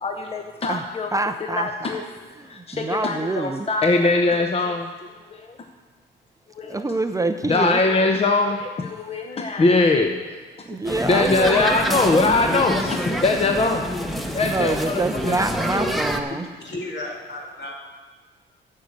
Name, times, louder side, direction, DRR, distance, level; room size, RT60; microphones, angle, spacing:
voice 1, 0.0-1.1 1.5-2.0 2.5-4.9 5.3-5.6 6.5-6.8 7.5-10.2 11.1-15.0 15.3-15.4, left 3 dB, 30° left, 3 dB, 0.9 m, -22 dB
voice 2, 0.7-2.0 2.4-3.7 6.7-7.8 10.6-12.3 14.4-16.5, right 2 dB, 15° right, 8 dB, 0.5 m, -26 dB
sound 1, 10.8-16.2, equal, ahead, 1.0 m, -27 dB
voice 3, 16.6-17.7, left 2 dB, 60° left, -1 dB, 2.5 m, -33 dB
9.1 x 6.5 x 8.3 m, 1.4 s
cardioid pair, 90°, 20 cm